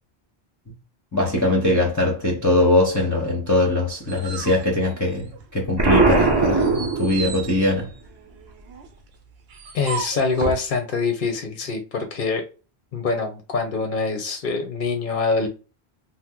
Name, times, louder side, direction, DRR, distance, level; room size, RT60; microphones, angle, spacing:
voice 1, 1.1-7.9, left 2 dB, 20° left, 0.7 m, -21 dB
sound 1, 3.6-5.6 6.0-10.7, right 5 dB, 70° right, 0.9 m, -35 dB
Explosion, 5.8-7.6, right 3 dB, 30° right, 0.5 m, -19 dB
voice 2, 9.7-12.4 12.9-15.5, left 4 dB, 55° left, 0.7 m, -24 dB
2.8 x 2.0 x 3.5 m
omnidirectional pair, 1.1 m